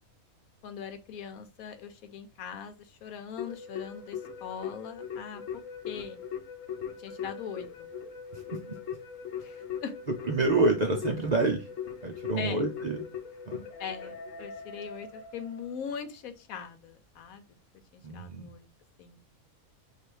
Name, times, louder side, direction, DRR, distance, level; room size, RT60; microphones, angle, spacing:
voice 1, 0.6-6.2 7.0-7.9 9.4-9.9 12.4-12.7 13.8-17.4 17.9-18.7 19.0-19.2, left 7 dB, 90° left, 9 dB, 1.1 m, -41 dB
Keyboard (musical), 3.4-15.8, left 7 dB, 70° left, 1.2 m, -40 dB
voice 2, 10.3-11.7 12.0-13.1 13.5-13.6 18.0-18.5, right 3 dB, 70° right, 3 dB, 0.4 m, -27 dB
3.3 x 2.7 x 4.4 m, 0.28 s
omnidirectional pair, 1.4 m